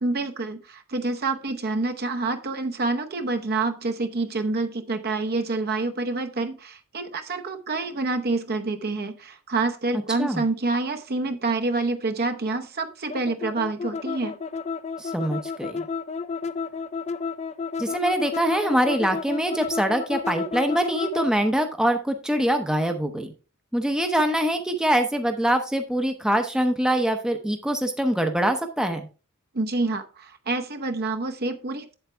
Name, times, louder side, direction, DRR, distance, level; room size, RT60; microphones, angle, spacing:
voice 1, 0.0-14.3 29.5-31.9, right 3 dB, 45° right, 6 dB, 0.9 m, -27 dB
sound 1, 13.1-21.3, left 5 dB, 30° left, 0.4 m, -31 dB
voice 2, 15.0-15.8 17.8-23.3 23.7-29.1, right 1 dB, 5° right, 5 dB, 0.7 m, -24 dB
7.9 x 7.9 x 3.3 m, 0.34 s
head